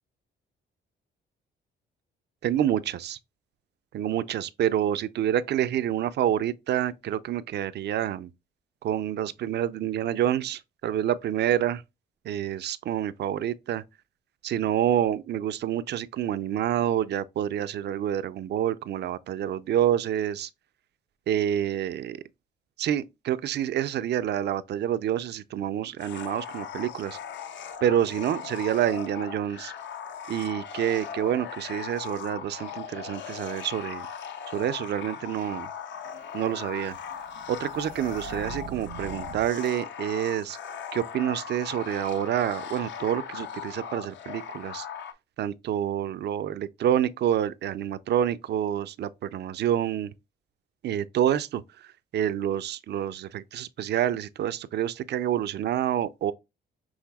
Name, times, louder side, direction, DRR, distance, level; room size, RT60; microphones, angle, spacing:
voice 1, 2.4-3.2 3.9-8.3 8.8-11.8 12.2-13.8 14.4-20.5 21.3-22.2 22.8-27.2 27.8-29.7 30.3-34.1 34.5-35.7 36.3-37.0 37.5-40.6 40.9-44.9 45.4-50.1 50.8-56.3, right 10 dB, 60° right, 0.4 m, -28 dB
sound 1, 26.0-45.1, left 8 dB, 65° left, 0.6 m, -39 dB
sound 2, 36.0-39.7, right 8 dB, 80° right, 1.2 m, -44 dB
6.3 x 3.3 x 2.3 m
cardioid pair, 90°, 20 cm